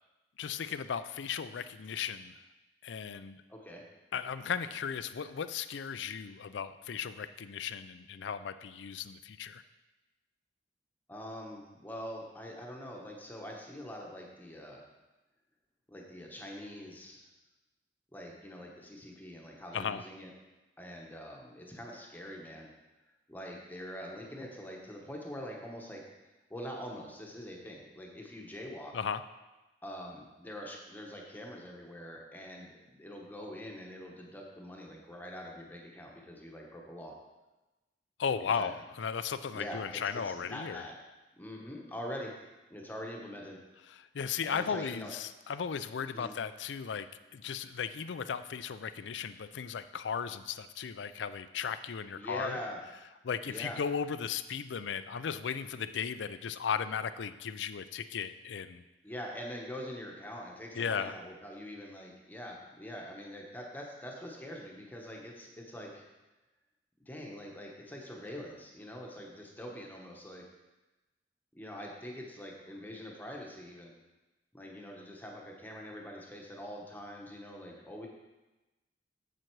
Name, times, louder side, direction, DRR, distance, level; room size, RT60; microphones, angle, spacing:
voice 1, 0.4-2.4 2.8-3.4 4.1-9.6 19.7-20.0 28.9-29.2 38.2-40.9 43.9-47.1 47.3-52.6 53.2-58.8 60.8-61.2, left 7 dB, 80° left, 12 dB, 0.4 m, -36 dB
voice 2, 3.5-3.9 11.1-14.9 15.9-17.2 18.1-20.3 20.8-22.7 23.3-26.0 26.5-29.0 29.8-37.2 38.4-38.7 39.5-41.0 41.4-42.4 42.7-43.6 44.4-45.1 46.1-46.3 52.2-52.8 53.4-53.8 59.0-66.1 67.1-70.4 71.5-73.9 74.5-78.1, equal, 10° left, -1 dB, 1.0 m, -44 dB
7.6 x 7.6 x 4.6 m, 1.1 s
head